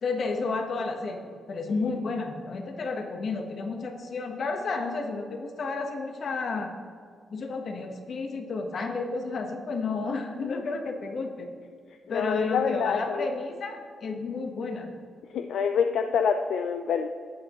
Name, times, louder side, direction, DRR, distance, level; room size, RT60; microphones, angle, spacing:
voice 1, 0.0-6.7 7.3-11.5 12.1-14.9, left 3 dB, 55° left, 4 dB, 1.1 m, -31 dB
voice 2, 12.1-13.3 15.3-17.1, left 6 dB, 75° left, 6 dB, 0.4 m, -26 dB
13.0 x 8.0 x 3.1 m, 2.1 s
cardioid pair, 95°, 0 cm